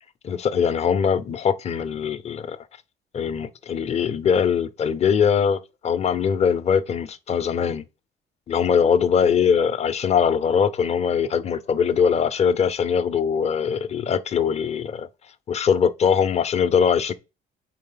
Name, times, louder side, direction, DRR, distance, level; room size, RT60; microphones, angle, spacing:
voice 1, 0.2-2.6 3.1-7.9 8.5-15.1 15.5-17.1, left 7 dB, 40° left, 0.7 m, -21 dB
4.3 x 4.0 x 5.6 m
cardioid pair, 110°, 17 cm